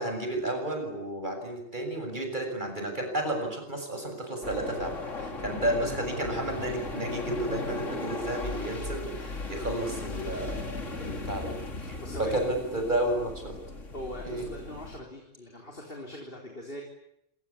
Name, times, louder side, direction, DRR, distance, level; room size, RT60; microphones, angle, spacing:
voice 1, 0.0-13.6 14.3-14.4, right 1 dB, 40° right, 4 dB, 7.3 m, -32 dB
sound 1, 4.4-15.0, left 3 dB, 85° left, 3.4 m, -37 dB
voice 2, 12.0-12.5 13.9-16.8, left 1 dB, 45° left, 1 dB, 4.2 m, -41 dB
26.5 x 25.0 x 8.6 m, 0.76 s
omnidirectional pair, 1.3 m